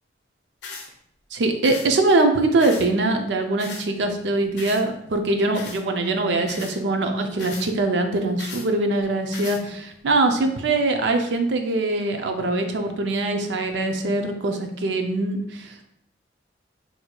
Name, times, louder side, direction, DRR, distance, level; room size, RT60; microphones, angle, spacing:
sound 1, 0.6-0.9 1.6-1.9 2.6-2.9 3.6-3.9 4.6-4.8 5.5-5.8 6.5-6.8 7.4-7.7 8.4-8.7 9.3-9.6, left 4 dB, 70° left, 0.6 m, -37 dB
voice 1, 1.3-15.7, right 2 dB, 80° right, 5 dB, 0.5 m, -22 dB
4.3 x 2.7 x 2.2 m, 0.74 s
head